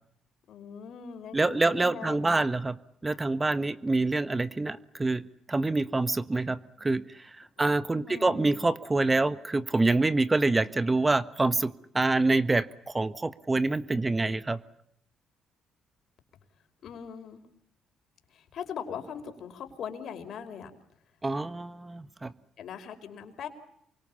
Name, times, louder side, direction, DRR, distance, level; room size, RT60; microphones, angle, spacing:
voice 1, 0.5-2.4 7.6-8.5 16.8-17.4 18.3-20.7 22.6-23.5, left 7 dB, 65° left, 8 dB, 5.2 m, -40 dB
voice 2, 1.3-2.8 3.0-5.2 5.5-14.6 21.2-22.3, right 2 dB, 20° right, 13 dB, 1.4 m, -26 dB
28.0 x 24.5 x 7.2 m, 0.72 s
supercardioid pair, 70°, 0 cm